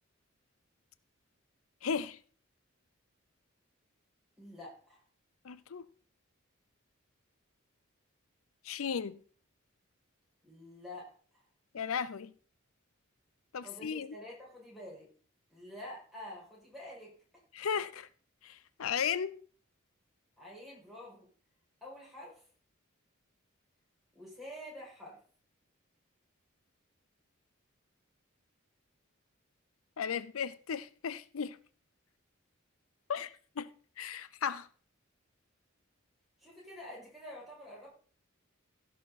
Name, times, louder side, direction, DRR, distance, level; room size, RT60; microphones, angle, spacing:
voice 1, 1.8-2.2 5.4-5.9 8.6-9.2 11.7-12.3 13.5-14.1 17.5-18.1 18.4-19.4 30.0-31.6 33.1-33.7 34.0-34.7, left 7 dB, 90° left, 0.5 m, -35 dB
voice 2, 4.4-5.0 10.4-11.1 13.6-15.1 15.5-17.1 20.4-21.3 21.8-22.4 24.1-25.2 36.4-37.9, left 1 dB, ahead, 5.9 m, -48 dB
16.0 x 6.5 x 4.1 m
head